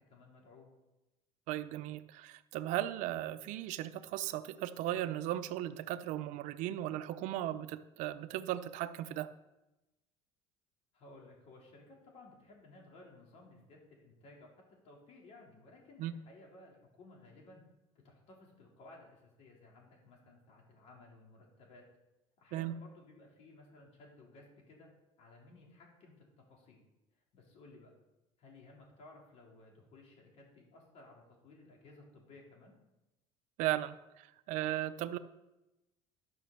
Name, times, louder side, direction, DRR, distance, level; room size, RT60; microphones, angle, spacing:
voice 1, 0.1-0.7 10.9-14.5 14.8-17.6 18.0-21.8 22.4-24.9 25.2-26.8 27.3-27.9 28.4-32.8, left 2 dB, 55° left, -1 dB, 3.9 m, -57 dB
voice 2, 1.5-9.3 16.0-16.1 22.5-22.8 33.6-35.2, right 13 dB, 70° right, 12 dB, 0.7 m, -37 dB
11.5 x 6.2 x 6.8 m, 0.97 s
cardioid pair, 135°, 13 cm